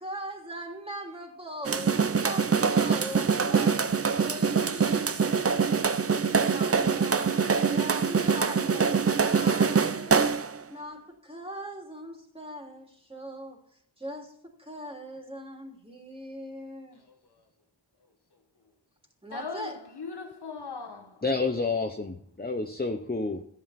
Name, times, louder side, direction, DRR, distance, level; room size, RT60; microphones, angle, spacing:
voice 1, 0.0-5.2 6.3-10.3 10.7-13.6 14.0-17.0 19.2-19.8, equal, 15° right, 3.2 m, -40 dB
sound 1, 1.6-10.6, right 5 dB, 35° right, 0.6 m, -24 dB
voice 2, 16.9-17.4 19.3-21.5 23.3-23.4, left 4 dB, 65° left, 1.5 m, -41 dB
voice 3, 21.2-23.4, left 3 dB, 20° left, 0.9 m, -29 dB
14.0 x 9.2 x 4.3 m
wide cardioid pair, 45°, 43 cm